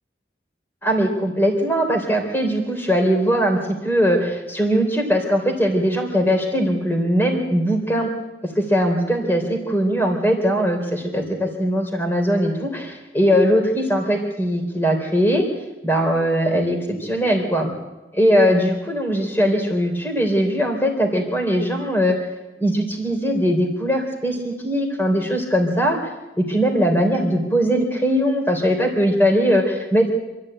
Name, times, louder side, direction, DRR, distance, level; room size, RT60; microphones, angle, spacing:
voice 1, 0.8-8.1 8.4-15.4 15.8-17.7 18.1-22.2 22.6-26.1 26.4-30.1, equal, 10° left, 3 dB, 3.6 m, -20 dB
26.5 x 14.0 x 8.9 m, 1.1 s
head